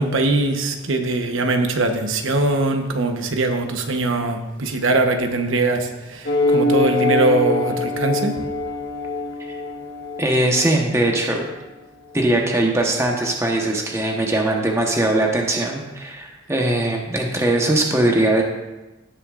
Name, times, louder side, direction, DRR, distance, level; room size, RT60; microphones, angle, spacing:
voice 1, 0.0-8.4, right 2 dB, 85° right, 5 dB, 1.0 m, -21 dB
sound 1, 6.3-11.2, left 2 dB, 60° left, 1.3 m, -23 dB
voice 2, 10.2-11.5 12.1-18.4, right 1 dB, 15° right, 1 dB, 1.0 m, -20 dB
17.0 x 6.7 x 2.5 m, 1.1 s
head